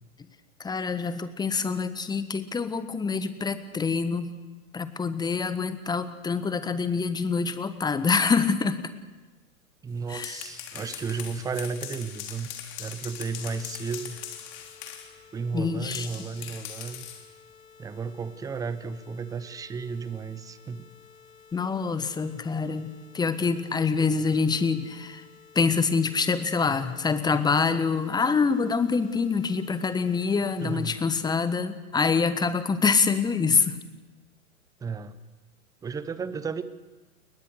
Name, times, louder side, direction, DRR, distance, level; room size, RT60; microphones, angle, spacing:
voice 1, 0.6-4.3 4.7-8.9 10.1-10.4 15.5-16.1 21.5-25.2 25.5-33.8, left 5 dB, 10° left, 12 dB, 1.3 m, -26 dB
voice 2, 9.8-12.5 12.8-14.2 15.3-17.1 17.8-20.8 30.6-31.0 34.8-35.2 35.8-36.6, right 5 dB, 10° right, 14 dB, 0.9 m, -33 dB
sound 1, 9.9-15.1 15.9-17.3, left 10 dB, 35° left, 3.8 m, -40 dB
sound 2, 13.1-30.9, left 6 dB, 65° left, 6.9 m, -54 dB
30.0 x 22.0 x 6.6 m, 1.2 s
figure-of-eight pair, 110°, 44 cm